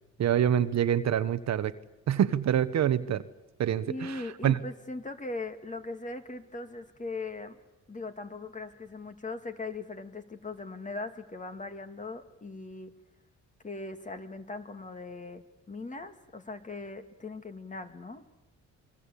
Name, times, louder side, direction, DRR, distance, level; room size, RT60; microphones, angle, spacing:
voice 1, 0.2-1.7 2.1-3.2 3.6-4.6, right 10 dB, 60° right, 12 dB, 1.2 m, -26 dB
voice 2, 3.9-7.6 7.9-12.9 13.6-18.2, left 3 dB, 25° left, 8 dB, 2.4 m, -39 dB
27.5 x 22.0 x 8.5 m, 1.0 s
cardioid pair, 90°, 30 cm